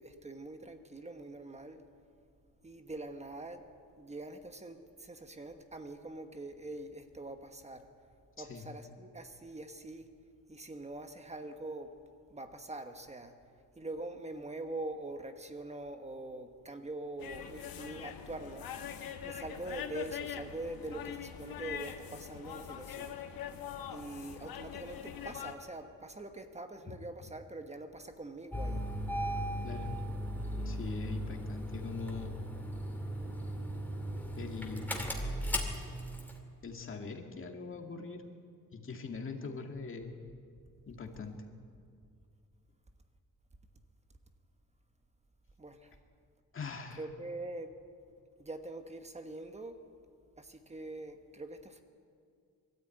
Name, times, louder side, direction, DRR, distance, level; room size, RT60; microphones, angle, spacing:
voice 1, 0.0-1.8 2.6-3.7 4.0-7.9 8.4-10.1 10.5-12.0 12.3-13.3 13.7-18.7 19.2-23.2 23.9-28.8 45.6-46.0 47.0-47.7 48.4-49.8 50.4-51.8, right 2 dB, 20° right, 7 dB, 1.2 m, -44 dB
sound 1, 17.2-25.6, left 9 dB, 85° left, 1.5 m, -43 dB
Engine starting, 28.5-36.4, equal, 5° left, 2.4 m, -37 dB
voice 2, 30.7-32.4 34.4-35.0 36.6-38.2 38.7-40.2 40.9-41.4 46.5-47.0, left 4 dB, 35° left, 3 dB, 2.1 m, -42 dB
22.0 x 13.5 x 9.0 m, 2.3 s
cardioid pair, 140°, 34 cm